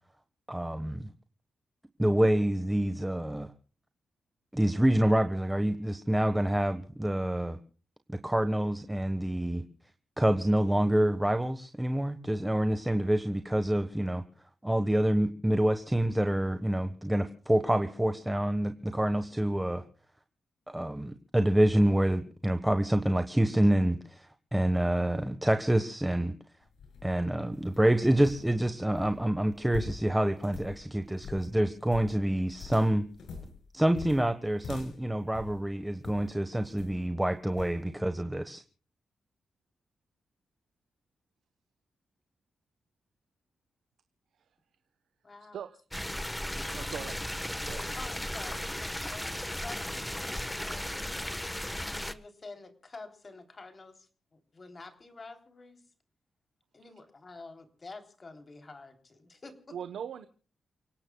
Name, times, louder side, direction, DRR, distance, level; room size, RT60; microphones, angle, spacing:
voice 1, 0.5-1.1 2.0-3.5 4.5-7.6 8.1-9.6 10.2-14.2 14.6-19.8 20.7-26.3 27.0-33.1 33.7-38.6, right 1 dB, 10° right, 8 dB, 1.3 m, -27 dB
sound 1, 26.6-36.3 36.8-37.1 37.6-37.8, left 4 dB, 85° left, 6.7 m, -45 dB
voice 2, 45.2-45.6 47.9-51.0 51.9-55.8 56.7-59.8, left 3 dB, 35° left, 6 dB, 3.3 m, -48 dB
sound 2, 45.9-52.1, left 1 dB, 10° left, 1.2 m, -36 dB
voice 3, 46.4-47.2 47.6-48.1 59.7-60.3, right 8 dB, 90° right, 10 dB, 1.0 m, -41 dB
30.0 x 17.5 x 2.3 m, 0.40 s
cardioid pair, 90°, 0 cm